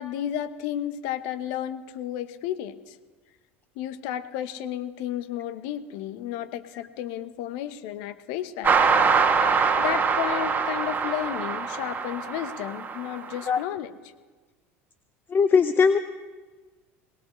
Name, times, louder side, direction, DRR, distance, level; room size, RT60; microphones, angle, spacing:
voice 1, 0.0-3.0 3.8-8.9 9.5-13.9, left 11 dB, 65° left, 12 dB, 1.0 m, -32 dB
sound 1, 8.6-13.5, right 5 dB, 25° right, 2.1 m, -24 dB
voice 2, 15.3-16.0, left 5 dB, 30° left, 11 dB, 0.8 m, -19 dB
22.5 x 19.0 x 3.2 m, 1.3 s
hypercardioid pair, 80°, 7 cm